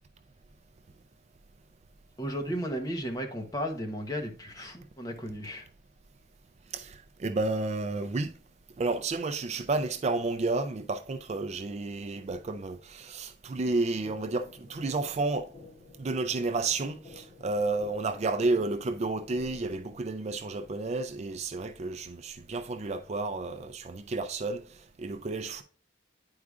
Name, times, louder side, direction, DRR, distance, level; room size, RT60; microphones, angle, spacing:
voice 1, 2.2-5.7, equal, 20° left, 1.0 m, -34 dB
voice 2, 6.7-8.3 8.8-15.5 16.0-25.6, right 3 dB, 35° right, 0.4 m, -31 dB
sound 1, 14.0-20.0, left 3 dB, 40° left, 2.7 m, -52 dB
9.6 x 4.8 x 2.4 m
head